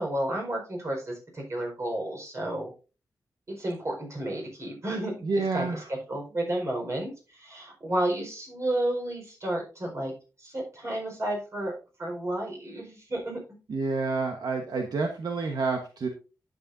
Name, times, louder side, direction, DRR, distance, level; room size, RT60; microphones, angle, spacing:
voice 1, 0.0-2.7 3.5-5.1 5.5-10.1 10.4-11.7 12.0-13.6, right 1 dB, 40° right, 0 dB, 4.6 m, -31 dB
voice 2, 5.2-5.8 13.7-16.1, right 4 dB, 70° right, 3 dB, 1.2 m, -28 dB
10.5 x 7.8 x 2.6 m, 0.33 s
wide cardioid pair, 110°, 7 cm